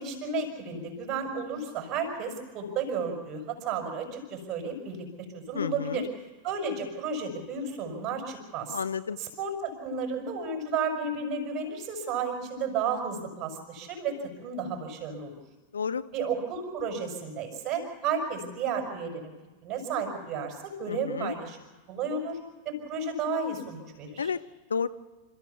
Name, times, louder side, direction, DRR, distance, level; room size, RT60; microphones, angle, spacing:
voice 1, 0.0-5.1 5.3-6.1 6.4-8.8 9.2-15.4 16.1-19.3 19.6-21.6 21.9-22.4 22.6-24.3, right 5 dB, 30° right, 2 dB, 5.9 m, -32 dB
voice 2, 5.5-6.1 8.7-9.2 15.7-16.0 20.9-21.4 24.2-24.4 24.7-24.9, left 6 dB, 70° left, 13 dB, 0.6 m, -31 dB
28.0 x 14.5 x 7.1 m, 1.3 s
figure-of-eight pair, 90°, 0 cm